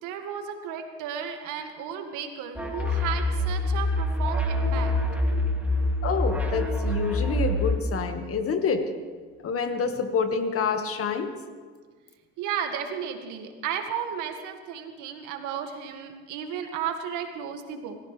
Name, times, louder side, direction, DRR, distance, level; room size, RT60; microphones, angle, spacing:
voice 1, 0.0-4.9 5.2-5.8 12.4-18.0, right 8 dB, 70° right, 4 dB, 2.2 m, -34 dB
sound 1, 2.6-7.8, left 1 dB, 5° right, 2.8 m, -26 dB
voice 2, 6.0-8.8 9.4-11.3, left 5 dB, 45° left, 6 dB, 1.9 m, -27 dB
25.5 x 15.0 x 3.4 m, 1.5 s
supercardioid pair, 85°, 32 cm